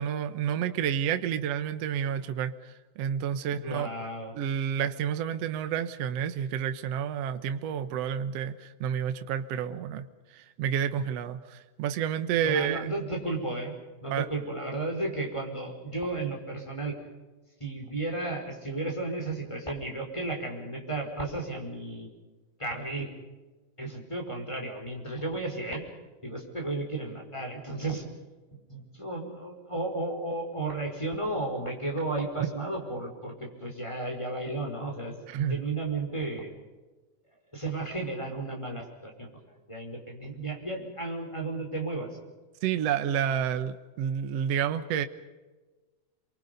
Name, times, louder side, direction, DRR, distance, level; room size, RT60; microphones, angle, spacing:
voice 1, 0.0-3.9 4.3-10.1 10.3-12.9 14.1-14.3 32.4-32.5 35.3-35.7 42.6-45.1, right 9 dB, 60° right, 9 dB, 2.0 m, -30 dB
voice 2, 3.5-4.3 12.4-13.7 14.0-17.0 17.6-22.1 22.6-23.1 23.8-25.8 26.2-28.0 28.7-35.1 35.5-36.5 37.5-39.3 39.7-42.1, right 2 dB, 10° left, 1 dB, 5.0 m, -33 dB
29.0 x 23.5 x 5.4 m, 1.2 s
omnidirectional pair, 3.6 m